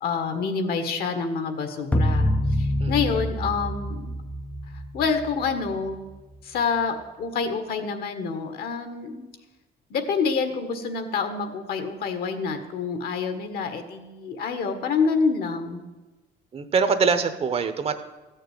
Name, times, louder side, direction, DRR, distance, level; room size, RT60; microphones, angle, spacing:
voice 1, 0.0-4.1 4.9-6.0 6.4-9.3 9.9-15.8, left 5 dB, 65° left, 8 dB, 1.7 m, -27 dB
sound 1, 1.9-6.4, left 1 dB, 10° left, 0.5 m, -26 dB
voice 2, 2.8-3.1 16.5-18.0, right 5 dB, 35° right, 10 dB, 0.9 m, -24 dB
14.5 x 6.6 x 9.5 m, 1.2 s
cardioid pair, 145°, 17 cm